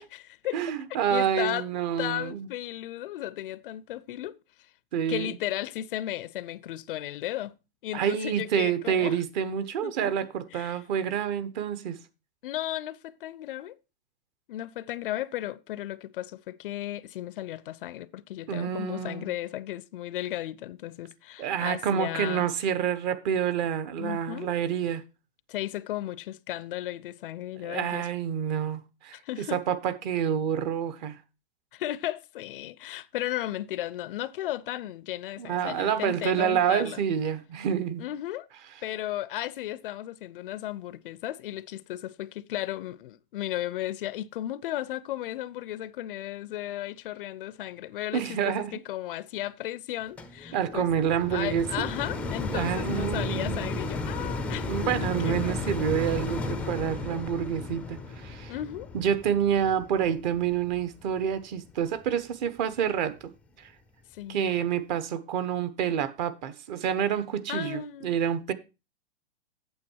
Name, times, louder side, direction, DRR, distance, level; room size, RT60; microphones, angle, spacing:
voice 1, 0.0-0.6 1.1-1.7 2.0-4.4 5.1-7.5 7.8-9.2 9.8-10.1 10.5-10.8 12.4-13.8 14.5-22.5 24.0-24.5 25.5-28.1 29.1-29.6 31.7-37.0 38.0-38.5 38.8-50.9 51.3-54.9 55.2-55.7 58.5-58.9 64.1-64.5 67.5-68.1, left 14 dB, 55° left, 0.5 m, -35 dB
voice 2, 0.5-2.5 4.9-5.3 7.9-12.0 18.5-19.3 21.4-25.0 27.6-31.2 35.4-38.1 48.1-48.8 50.5-51.9 52.5-53.7 54.6-58.5 58.9-63.3 63.6-63.7 64.3-68.5, right 8 dB, 45° right, 1.1 m, -28 dB
sound 1, 50.2-61.4 62.0-62.1, left 3 dB, 5° left, 0.5 m, -34 dB
8.7 x 7.2 x 4.5 m
hypercardioid pair, 140°, 32 cm